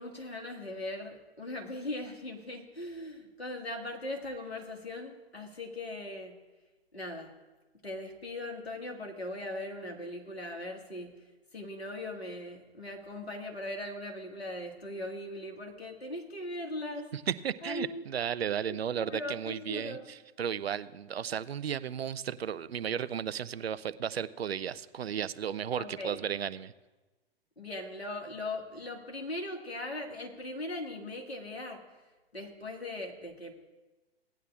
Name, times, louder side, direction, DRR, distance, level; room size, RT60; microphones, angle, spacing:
voice 1, 0.0-6.3 6.9-7.3 7.8-11.1 11.5-17.1 17.6-18.0 18.9-20.1 25.8-26.2 27.6-31.8 32.3-33.5, left 1 dB, 85° left, 2 dB, 1.9 m, -39 dB
voice 2, 17.1-26.7, right 8 dB, 80° right, 16 dB, 0.5 m, -34 dB
17.5 x 10.0 x 2.4 m, 1.2 s
figure-of-eight pair, 110°, 30 cm